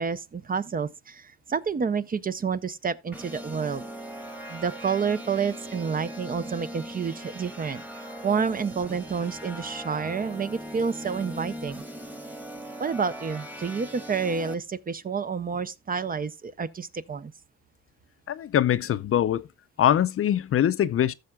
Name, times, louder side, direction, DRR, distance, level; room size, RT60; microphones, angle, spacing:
voice 1, 0.0-3.9 4.5-11.8 12.8-17.3, right 6 dB, 30° right, 0.5 m, -29 dB
sound 1, 3.1-14.5, equal, 5° right, 1.3 m, -39 dB
voice 2, 18.3-19.5 19.8-21.1, left 10 dB, 50° left, 0.5 m, -23 dB
15.0 x 6.6 x 2.3 m
cardioid pair, 90°, 30 cm